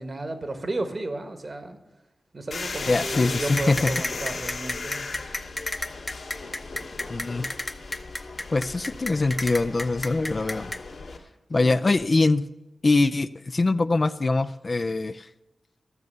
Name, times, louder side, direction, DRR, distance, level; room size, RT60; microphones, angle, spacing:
voice 1, 0.0-1.8 2.3-5.0 11.5-11.8, right 2 dB, 45° right, 8 dB, 1.4 m, -33 dB
sound 1, 2.5-11.2, left 3 dB, 80° left, 2.0 m, -36 dB
voice 2, 2.9-3.9 7.1-7.5 8.5-10.7 11.5-12.4 12.8-15.3, left 3 dB, 40° left, 12 dB, 0.3 m, -23 dB
sound 2, 3.6-10.8, left 1 dB, 20° left, 0.7 m, -31 dB
13.5 x 6.6 x 6.7 m, 1.0 s
wide cardioid pair, 80°, 0 cm